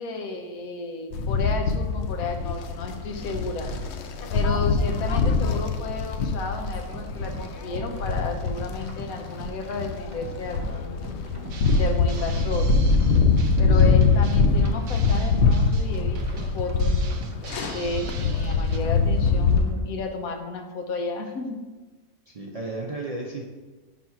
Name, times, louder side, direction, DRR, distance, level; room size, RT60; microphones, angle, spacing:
voice 1, 0.0-3.7 4.3-11.0 11.7-12.8 13.6-17.1 17.7-21.6, left 3 dB, 90° left, 4 dB, 1.3 m, -32 dB
sound 1, 1.1-19.6, left 4 dB, 65° left, 0.8 m, -23 dB
sound 2, 6.6-19.8, right 1 dB, 15° right, 0.8 m, -42 dB
Drum kit, 11.5-18.8, right 3 dB, 80° right, 1.0 m, -41 dB
voice 2, 13.7-14.1 22.3-23.4, right 2 dB, 45° right, -2 dB, 0.5 m, -34 dB
6.1 x 3.9 x 5.7 m, 1.3 s
omnidirectional pair, 1.5 m